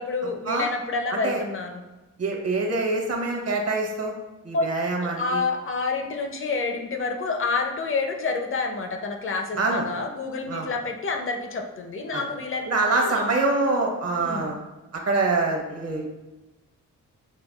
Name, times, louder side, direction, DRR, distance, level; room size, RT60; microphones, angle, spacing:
voice 1, 0.0-1.8 4.5-4.7 5.0-12.7 13.0-13.2 14.2-14.6, left 4 dB, 40° left, 4 dB, 0.5 m, -28 dB
voice 2, 1.1-1.4 2.2-4.2 4.4-5.4 9.6-9.9 10.5-10.7 12.1-12.2 12.7-14.6 15.1-16.1, right 3 dB, 50° right, 1 dB, 0.8 m, -25 dB
6.2 x 2.3 x 2.3 m, 1.1 s
wide cardioid pair, 140°, 32 cm